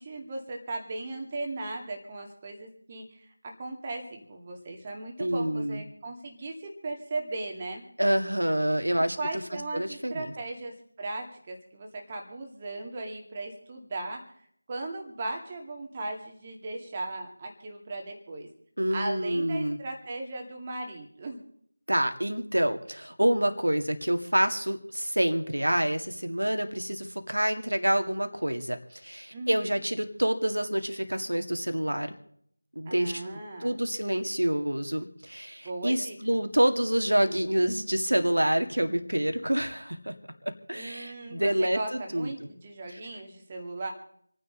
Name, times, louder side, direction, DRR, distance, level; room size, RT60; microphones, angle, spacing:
voice 1, 0.0-7.8 9.2-14.2 14.7-18.5 18.9-21.4 29.3-29.8 32.9-33.7 35.6-36.4 40.7-43.9, right 2 dB, 20° right, 1 dB, 2.2 m, -37 dB
voice 2, 5.2-5.8 8.0-9.2 9.7-10.3 18.8-19.8 21.9-32.1 32.8-40.1 40.7-42.3 42.9-43.0, right 1 dB, 80° right, 7 dB, 2.1 m, -27 dB
28.0 x 9.6 x 3.9 m, 0.68 s
figure-of-eight pair, 170°, 0 cm